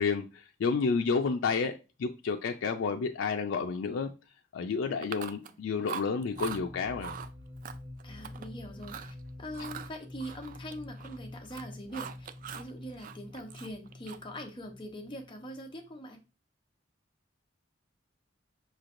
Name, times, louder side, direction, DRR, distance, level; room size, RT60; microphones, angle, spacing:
voice 1, 0.0-4.1 4.5-7.1, left 5 dB, 75° left, 0.4 m, -30 dB
Chewing mastication, 5.0-5.6 5.9-6.6 7.0-7.3 7.6-8.5 8.8-9.1 9.5-11.2 11.4-12.7 13.0-14.4, right 8 dB, 45° right, 0.3 m, -42 dB
sound 1, 6.3-16.0, left 1 dB, 75° right, 1.7 m, -47 dB
voice 2, 8.0-12.3 12.5-16.2, equal, 25° left, 0.8 m, -43 dB
5.6 x 3.1 x 2.5 m
head